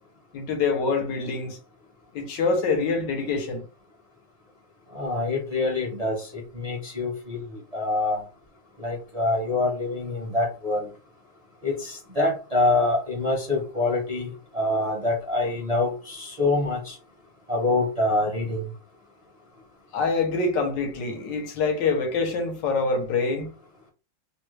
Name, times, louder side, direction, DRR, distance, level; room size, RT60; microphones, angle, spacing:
voice 1, 0.3-1.6 2.1-3.6 19.9-23.5, left 4 dB, 75° left, 1.5 m, -25 dB
voice 2, 4.9-8.2 8.8-10.9 11.6-17.0 17.5-18.7, left 2 dB, 35° right, 0.6 m, -25 dB
3.3 x 2.2 x 3.1 m
omnidirectional pair, 2.0 m